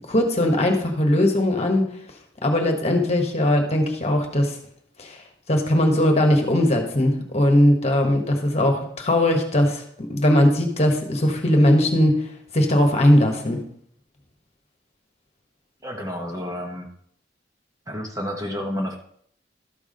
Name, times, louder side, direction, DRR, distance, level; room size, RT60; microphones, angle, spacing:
voice 1, 0.1-1.8 2.4-4.6 5.0-5.2 5.5-9.8 10.1-12.3 12.5-13.6, left 1 dB, 35° left, 3 dB, 1.4 m, -19 dB
voice 2, 15.8-16.9 17.9-18.9, equal, 20° right, 1 dB, 1.1 m, -30 dB
12.5 x 4.8 x 5.3 m, 0.65 s
head